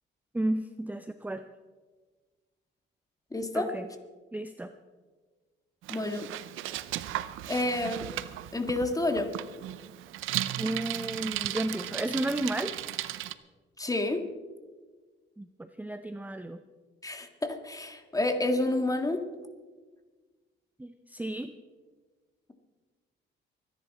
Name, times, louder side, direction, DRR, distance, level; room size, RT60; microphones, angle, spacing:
voice 1, 0.3-1.4 3.5-3.9 4.3-4.7 10.6-12.7 15.4-16.6 20.8-21.5, right 1 dB, 10° right, 9 dB, 0.6 m, -33 dB
voice 2, 3.3-3.7 5.9-6.3 7.5-8.1 8.5-9.3 13.8-14.3 17.0-19.2, left 2 dB, 15° left, 6 dB, 1.9 m, -29 dB
Bicycle, 5.8-13.3, right 14 dB, 90° right, 0.7 m, -36 dB
24.0 x 10.5 x 4.2 m, 1.4 s
cardioid pair, 90°, 20 cm